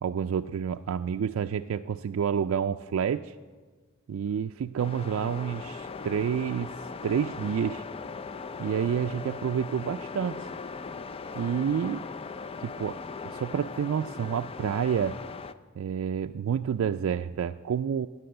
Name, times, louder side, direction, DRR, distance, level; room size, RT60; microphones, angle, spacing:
voice 1, 0.0-3.3 4.1-6.7 7.0-7.8 8.6-10.5 11.4-12.0 12.6-15.2 15.8-18.1, right 7 dB, 75° right, 7 dB, 0.3 m, -29 dB
sound 1, 4.8-15.5, left 4 dB, 30° left, 0.4 m, -39 dB
18.0 x 6.1 x 7.7 m, 1.4 s
head